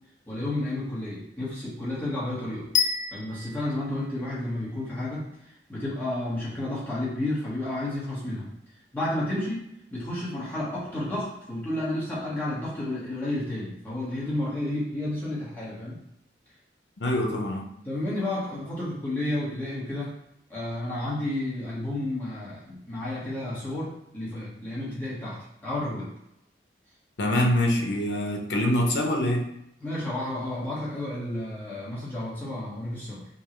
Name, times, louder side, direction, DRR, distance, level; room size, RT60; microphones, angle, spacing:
voice 1, 0.3-2.7 3.1-8.5 8.9-16.0 17.8-20.1 20.5-26.1 29.8-33.3, left 1 dB, 10° left, -9 dB, 1.3 m, -31 dB
sound 1, 2.7-4.8, left 7 dB, 40° left, 0.3 m, -29 dB
voice 2, 17.0-17.7 27.2-29.5, left 1 dB, 75° left, 1 dB, 0.7 m, -25 dB
5.2 x 2.4 x 3.1 m, 0.80 s
head